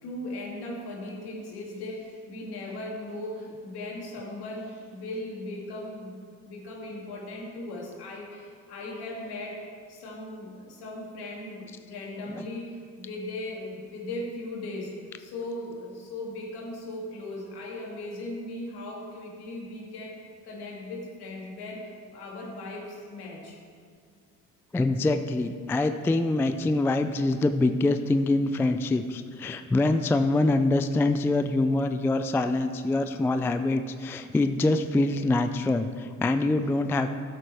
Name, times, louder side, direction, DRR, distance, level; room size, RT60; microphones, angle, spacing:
voice 1, 0.0-6.2 6.5-9.6 9.9-20.2 20.4-23.6, left 1 dB, 60° left, -2 dB, 2.6 m, -38 dB
voice 2, 24.7-37.2, left 2 dB, 5° left, 9 dB, 0.3 m, -25 dB
13.5 x 7.9 x 3.4 m, 2.1 s
hypercardioid pair, 55°, 43 cm